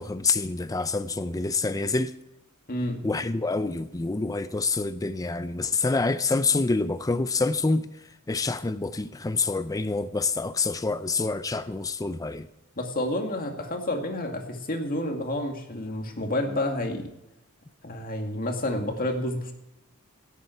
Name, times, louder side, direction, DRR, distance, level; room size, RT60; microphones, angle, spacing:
voice 1, 0.0-2.1 3.0-7.9 8.3-12.5, left 3 dB, 15° left, 0.4 m, -27 dB
voice 2, 2.7-3.0 12.8-17.1 17.8-19.5, left 1 dB, 40° left, 2.2 m, -29 dB
17.0 x 8.3 x 4.6 m
head